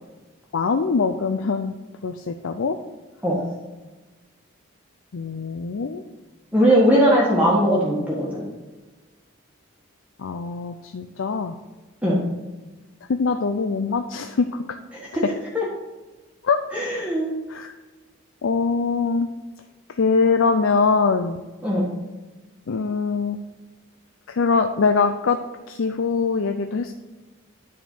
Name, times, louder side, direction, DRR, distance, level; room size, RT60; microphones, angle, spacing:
voice 1, 0.5-1.8 2.0-2.8 5.1-6.0 10.2-11.6 13.0-14.8 16.4-16.6 17.5-17.7 18.4-19.3 19.9-21.4 22.7-23.4 24.3-25.4 25.7-26.9, left 4 dB, 70° left, 7 dB, 0.5 m, -23 dB
voice 2, 6.5-8.4 12.0-12.1 15.5-15.6 16.7-17.3 21.6-21.8, equal, 5° right, -6 dB, 1.5 m, -19 dB
10.0 x 4.3 x 6.0 m, 1.2 s
head